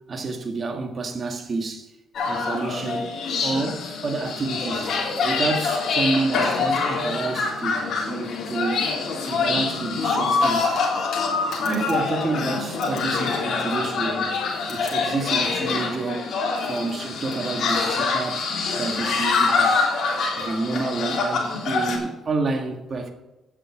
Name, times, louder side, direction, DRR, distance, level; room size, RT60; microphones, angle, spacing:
voice 1, 0.1-1.9 2.3-3.1 3.4-4.9 5.2-8.8 9.3-10.8 11.6-14.3 14.7-16.3 16.6-18.5 18.8-19.9 20.4-23.1, right 3 dB, 45° right, 1.7 m, -29 dB
sound 1, 2.1-22.0, left 4 dB, 65° left, 3.6 m, -25 dB
9.7 x 7.6 x 6.1 m
cardioid pair, 90°, 0 cm